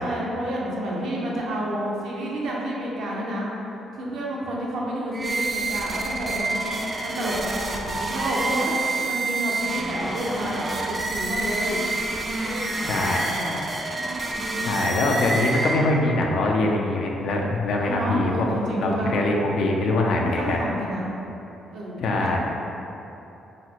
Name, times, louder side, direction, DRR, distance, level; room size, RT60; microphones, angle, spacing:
voice 1, 0.0-3.5 3.9-6.6 7.0-11.8 12.4-13.6 14.3-14.7 17.8-19.1 20.2-21.1 21.7-22.4, equal, 75° right, -4 dB, 0.6 m, -30 dB
sound 1, 5.1-16.2, right 2 dB, 30° right, 0.3 m, -28 dB
voice 2, 12.9-13.2 14.6-20.7 22.0-22.4, left 2 dB, 70° left, 0 dB, 0.4 m, -23 dB
3.9 x 2.1 x 2.8 m, 3.0 s
cardioid pair, 90°, 0 cm